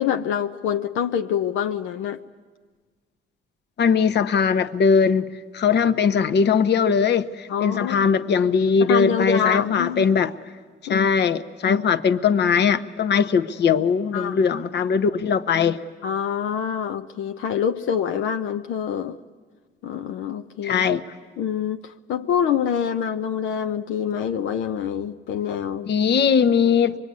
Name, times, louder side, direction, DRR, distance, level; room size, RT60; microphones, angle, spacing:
voice 1, 0.0-2.2 7.5-8.1 8.8-10.1 10.9-11.1 11.7-11.9 13.1-13.2 14.1-14.7 16.0-19.2 19.8-21.0 21.4-25.9, left 8 dB, 80° left, 0.7 m, -26 dB
voice 2, 3.8-5.3 5.5-10.3 10.9-15.8 20.6-21.0 25.9-27.0, left 6 dB, 60° left, 1.0 m, -20 dB
24.5 x 22.0 x 9.5 m
cardioid pair, 90°, 20 cm